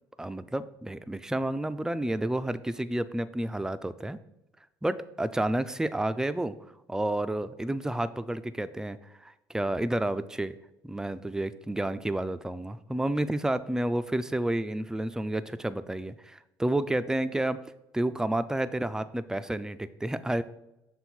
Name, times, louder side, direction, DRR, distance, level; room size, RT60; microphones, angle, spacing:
voice 1, 0.2-4.2 4.8-6.6 6.9-10.6 10.8-17.6 17.9-20.4, right 1 dB, 5° right, 13 dB, 0.3 m, -30 dB
6.9 x 3.6 x 4.4 m, 0.92 s
figure-of-eight pair, 55°, 13 cm